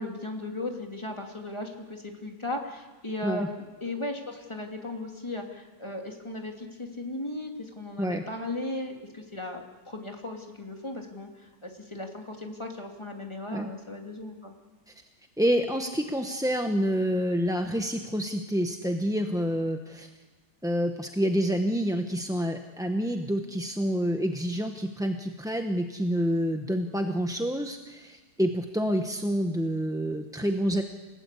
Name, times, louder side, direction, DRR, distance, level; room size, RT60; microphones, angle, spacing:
voice 1, 0.0-14.5, left 2 dB, 15° left, 2 dB, 2.8 m, -37 dB
voice 2, 15.4-20.1 20.6-30.8, equal, 5° right, 4 dB, 0.8 m, -28 dB
29.0 x 16.5 x 8.4 m, 1.2 s
omnidirectional pair, 1.9 m